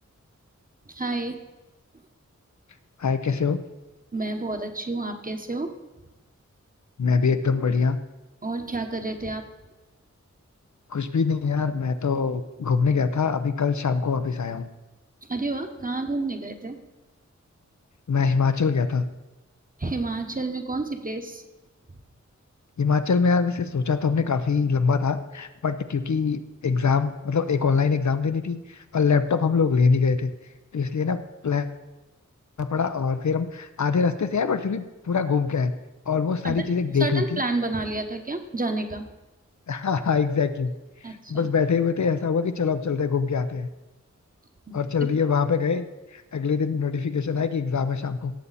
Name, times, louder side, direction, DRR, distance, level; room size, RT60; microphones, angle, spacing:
voice 1, 0.9-1.4 4.1-5.7 8.4-9.4 15.3-16.8 19.8-21.4 36.4-36.6 37.0-39.1 41.0-41.4 44.7-44.8, right 2 dB, 30° right, 5 dB, 1.2 m, -30 dB
voice 2, 3.0-3.6 7.0-8.0 10.9-14.7 18.1-19.0 22.8-30.3 30.7-31.7 32.6-35.7 36.1-37.4 39.7-40.7 41.0-43.7 44.7-45.9 46.1-48.3, left 5 dB, 70° left, 9 dB, 0.7 m, -24 dB
17.5 x 7.1 x 4.2 m, 1.1 s
wide cardioid pair, 80°, 30 cm